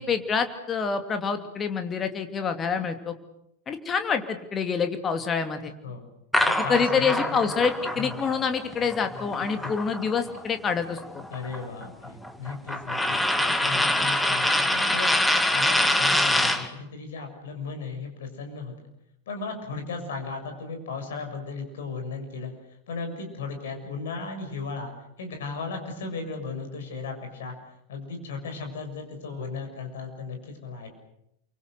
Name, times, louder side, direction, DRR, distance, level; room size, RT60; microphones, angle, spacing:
voice 1, 0.0-3.1 3.7-5.7 6.7-11.2, left 6 dB, 20° left, 7 dB, 2.7 m, -27 dB
sound 1, 6.3-10.4 10.7-16.7, left 1 dB, 5° left, 2.1 m, -25 dB
voice 2, 6.4-7.6 7.9-8.2 9.6-9.7 11.3-18.7 19.3-22.5 22.9-24.9 25.2-27.5 27.9-30.9, left 4 dB, 60° left, 5 dB, 7.0 m, -36 dB
29.5 x 24.5 x 6.7 m, 0.79 s
figure-of-eight pair, 90°, 0 cm